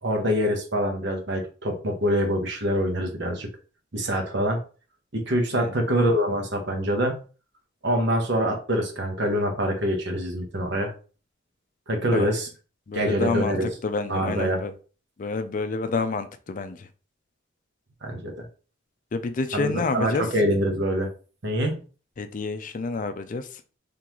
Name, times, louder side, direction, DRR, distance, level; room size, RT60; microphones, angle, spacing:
voice 1, 0.0-3.5 3.9-4.6 5.1-7.2 7.8-10.9 11.9-12.5 12.9-13.7 14.1-14.6 18.0-18.5 19.5-21.1 21.4-21.8, equal, 65° right, 1.1 m, -25 dB
voice 2, 12.9-14.7 15.2-16.9 19.1-20.2 22.2-23.5, left 3 dB, 45° left, 0.4 m, -28 dB
3.8 x 3.4 x 3.0 m
head